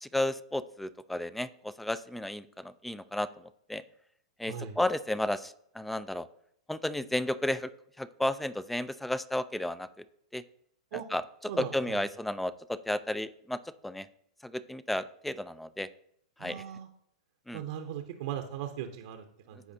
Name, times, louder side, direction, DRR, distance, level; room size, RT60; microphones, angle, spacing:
voice 1, 0.0-3.3 3.7-3.8 4.4-6.3 6.7-7.7 8.0-10.0 10.3-10.4 10.9-14.1 14.4-15.9 16.4-16.6 17.5-17.6, left 1 dB, 5° left, 16 dB, 0.4 m, -33 dB
voice 2, 11.5-12.0 16.4-16.9 17.5-19.7, right 10 dB, 60° right, 5 dB, 0.8 m, -38 dB
14.0 x 5.0 x 2.7 m, 0.72 s
hypercardioid pair, 115°, 3 cm